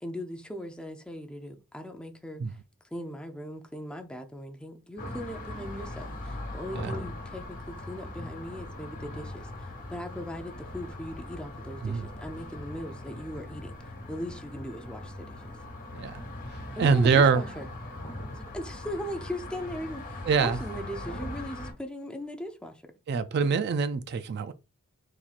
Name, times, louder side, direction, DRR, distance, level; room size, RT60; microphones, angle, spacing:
voice 1, 0.0-2.6 2.9-13.8 14.1-15.4 16.7-17.7 18.3-22.9, equal, 5° left, 0.5 m, -39 dB
sound 1, 5.0-21.7, left 1 dB, 40° left, 1.4 m, -40 dB
voice 2, 16.8-17.4 20.3-20.6 23.1-24.5, right 5 dB, 50° right, 0.3 m, -24 dB
4.3 x 4.3 x 2.4 m
head